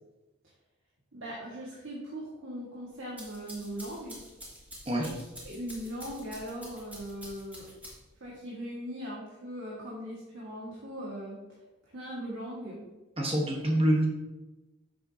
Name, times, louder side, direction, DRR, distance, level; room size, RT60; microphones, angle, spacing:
voice 1, 1.1-4.2 4.9-7.7 8.2-11.4 11.8-12.9, equal, 60° right, -5 dB, 1.8 m, -39 dB
sound 1, 2.9-8.2, equal, 10° right, 2.8 m, -48 dB
voice 2, 13.2-14.1, right 1 dB, 25° right, 0 dB, 1.2 m, -26 dB
9.8 x 7.1 x 2.8 m, 1.1 s
head